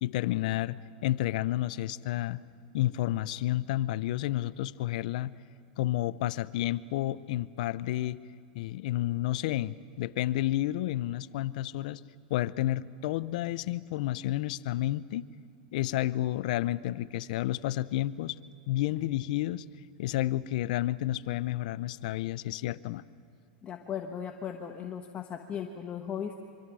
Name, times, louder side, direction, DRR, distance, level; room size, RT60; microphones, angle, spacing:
voice 1, 0.0-2.4 2.7-5.3 5.8-8.2 8.5-12.0 12.3-15.3 15.7-18.4 18.7-19.6 20.0-23.0, left 15 dB, 65° left, 17 dB, 0.7 m, -30 dB
voice 2, 23.6-26.3, left 8 dB, 25° left, 4 dB, 1.3 m, -37 dB
26.0 x 24.5 x 6.3 m, 2.5 s
supercardioid pair, 130°, 5 cm